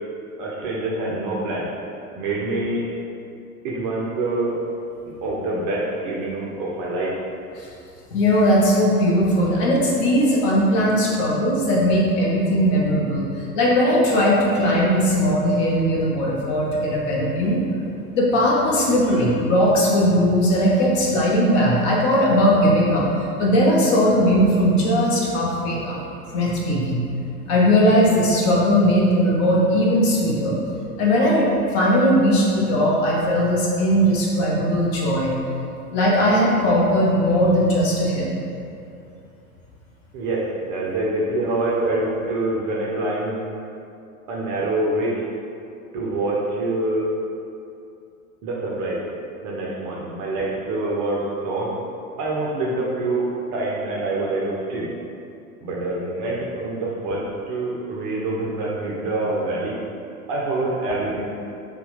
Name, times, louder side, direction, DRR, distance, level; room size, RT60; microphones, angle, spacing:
voice 1, 0.4-1.7 2.2-2.8 3.6-4.6 5.2-7.1 40.1-43.4 44.3-45.2 45.9-47.1 48.4-49.0 49.4-51.7 52.2-54.9 55.6-59.8 60.3-61.3, right 2 dB, 35° right, -4 dB, 0.5 m, -25 dB
voice 2, 8.1-17.6 18.1-26.0 26.3-27.0 27.5-30.6 31.0-35.3 35.9-38.3, equal, 45° left, -4 dB, 0.8 m, -19 dB
2.8 x 2.2 x 3.9 m, 2.6 s
figure-of-eight pair, 85°, 45 cm